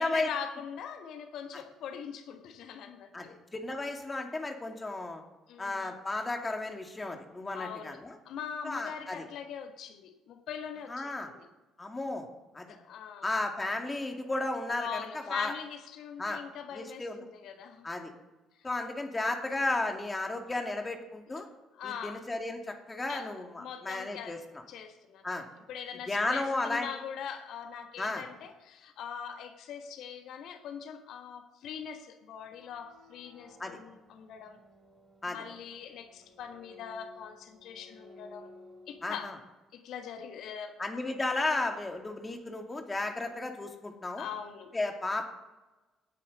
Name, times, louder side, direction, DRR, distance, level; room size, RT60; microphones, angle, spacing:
voice 1, 0.0-3.4 5.5-5.9 7.5-11.5 12.7-13.3 14.8-17.9 18.6-18.7 21.3-21.4 21.7-22.3 23.1-23.3 23.6-24.4 24.7-25.3 25.7-34.6 35.3-38.5 38.9-39.3 39.7-40.8 44.2-44.7, left 7 dB, 60° left, 7 dB, 1.4 m, -42 dB
voice 2, 3.5-5.2 5.6-8.2 8.6-9.3 10.9-11.3 11.8-12.3 12.5-12.7 13.2-15.5 16.2-16.4 16.7-17.2 17.8-18.1 18.6-21.5 21.8-24.6 25.2-25.5 26.1-26.9 28.0-28.3 33.6-33.8 35.2-35.4 39.0-39.4 40.8-44.3 44.7-45.3, left 2 dB, 25° left, 4 dB, 2.4 m, -34 dB
sound 1, 32.4-39.4, left 2 dB, 30° right, 5.4 m, -56 dB
18.0 x 9.9 x 4.1 m, 1.1 s
figure-of-eight pair, 45°, 0 cm